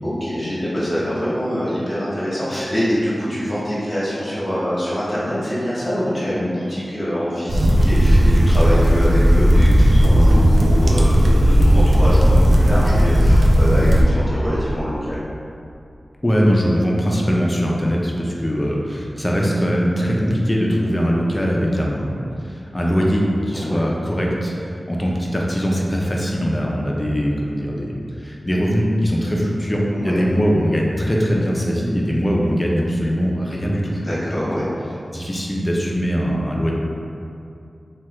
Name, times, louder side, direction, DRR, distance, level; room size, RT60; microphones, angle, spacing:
voice 1, 0.0-15.2 23.5-23.8 29.9-30.2 34.0-34.6, equal, 40° left, -10 dB, 0.9 m, -24 dB
sound 1, 7.5-14.0, equal, 75° right, 0.3 m, -14 dB
voice 2, 16.2-22.2 22.4-34.0 34.6-34.7 35.1-36.7, equal, 20° left, -2 dB, 0.4 m, -21 dB
3.1 x 2.3 x 3.0 m, 2.5 s
wide cardioid pair, 75°, 0 cm